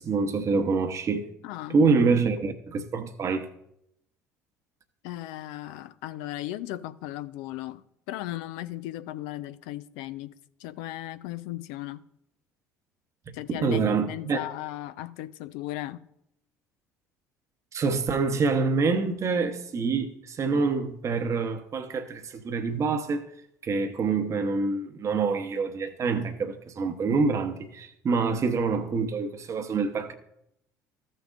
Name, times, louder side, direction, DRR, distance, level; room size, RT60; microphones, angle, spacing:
voice 1, 0.0-1.3 1.7-3.5 13.3-14.4 17.7-23.3 23.6-30.1, right 4 dB, 35° right, 1.0 m, -26 dB
voice 2, 1.4-1.8 5.0-10.3 10.6-12.0 13.3-16.0, left 15 dB, 60° left, 0.5 m, -36 dB
14.5 x 6.5 x 2.5 m
figure-of-eight pair, 60°, 9 cm